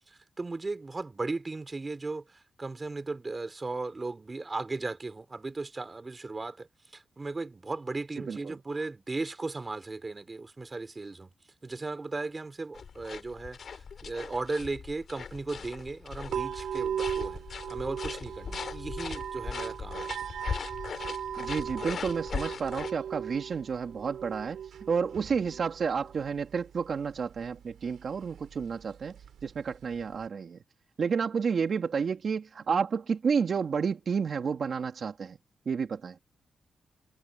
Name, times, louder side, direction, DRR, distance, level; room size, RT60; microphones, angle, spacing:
voice 1, 0.1-6.7 6.9-11.3 11.6-17.4 17.7-20.1, right 3 dB, 30° right, 4.3 m, -36 dB
sound 1, 12.7-22.9, left 6 dB, 65° left, 3.6 m, -39 dB
sound 2, 16.3-30.3, right 9 dB, 80° right, 4.2 m, -39 dB
voice 2, 21.4-24.6 24.9-29.2 29.4-30.6 31.0-35.4 35.7-36.2, right 6 dB, 60° right, 2.8 m, -30 dB
cardioid pair, 60°, 0 cm